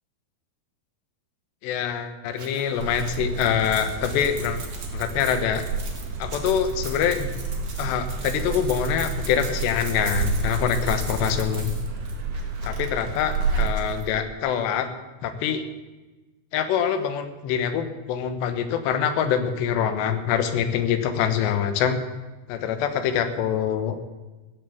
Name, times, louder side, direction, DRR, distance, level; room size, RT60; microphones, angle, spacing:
voice 1, 1.6-4.6 4.9-5.7 6.2-7.3 7.8-11.7 12.6-14.9 15.2-15.6 16.5-22.0 22.5-24.1, left 8 dB, 80° left, 9 dB, 3.3 m, -25 dB
sound 1, 2.3-14.0, right 4 dB, 35° right, 1.8 m, -41 dB
sound 2, 2.8-13.7, right 3 dB, 75° right, 3.6 m, -30 dB
16.0 x 7.7 x 8.4 m, 1.2 s
omnidirectional pair, 4.9 m